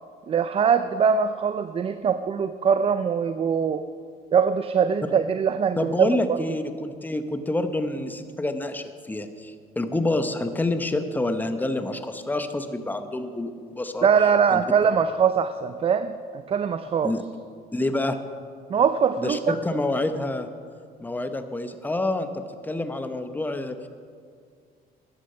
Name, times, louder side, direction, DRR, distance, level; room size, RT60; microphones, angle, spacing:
voice 1, 0.3-3.8 4.3-6.4 14.0-17.1 18.7-19.6, right 6 dB, 35° right, 11 dB, 0.5 m, -22 dB
voice 2, 5.8-14.1 14.5-14.6 17.0-17.2 17.7-18.2 19.2-20.5 21.0-23.9, left 2 dB, 10° left, 8 dB, 0.9 m, -28 dB
14.5 x 10.0 x 5.5 m, 2.1 s
cardioid pair, 110°, 17 cm